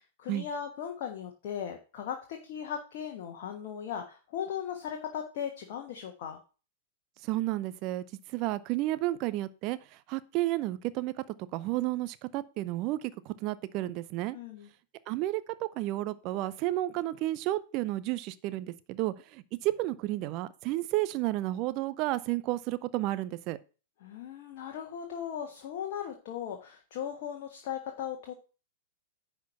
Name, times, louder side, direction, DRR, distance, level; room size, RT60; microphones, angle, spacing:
voice 1, 0.0-6.4 14.3-14.7 24.0-28.3, left 8 dB, 45° left, 3 dB, 1.4 m, -38 dB
voice 2, 7.2-8.1 8.3-11.1 11.5-14.4 15.1-23.6, right 16 dB, 35° right, 15 dB, 0.6 m, -32 dB
10.5 x 4.5 x 5.8 m, 0.34 s
figure-of-eight pair, 100°, 0 cm